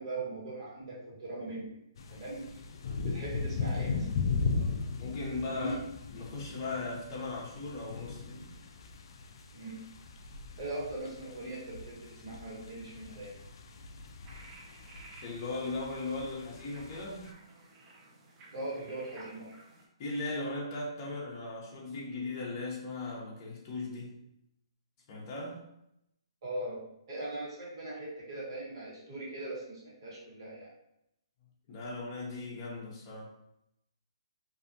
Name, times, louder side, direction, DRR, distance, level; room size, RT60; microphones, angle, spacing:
voice 1, 0.0-1.8 2.1-2.4 3.0-4.1 5.5-5.8 9.5-9.8 10.6-13.3 18.5-19.5 26.4-30.7, right 2 dB, 50° right, -6 dB, 1.4 m, -40 dB
sound 1, 2.0-17.3, left 4 dB, 55° left, 0.3 m, -38 dB
voice 2, 4.5-5.7 6.1-8.5 15.1-17.4 20.0-24.2 25.1-25.7 31.7-33.3, left 2 dB, 35° left, -4 dB, 0.8 m, -38 dB
sound 2, 14.2-19.9, right 2 dB, 25° right, 0.6 m, -55 dB
2.7 x 2.4 x 2.6 m, 0.81 s
hypercardioid pair, 145°, 3 cm